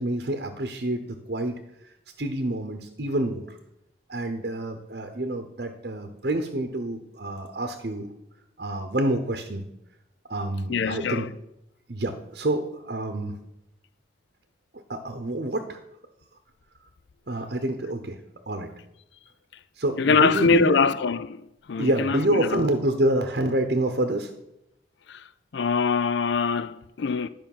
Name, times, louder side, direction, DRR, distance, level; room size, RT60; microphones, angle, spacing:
voice 1, 0.0-1.6 2.2-3.6 4.1-8.1 8.6-9.6 10.3-11.3 11.9-13.3 14.9-15.8 17.3-18.2 18.5-18.7 19.8-20.9 21.8-24.3, right 1 dB, 55° right, 0.9 m, -27 dB
voice 2, 10.7-11.3 20.0-22.7 25.1-25.3 25.5-27.3, left 5 dB, 70° left, 0.4 m, -23 dB
11.5 x 5.2 x 7.3 m
head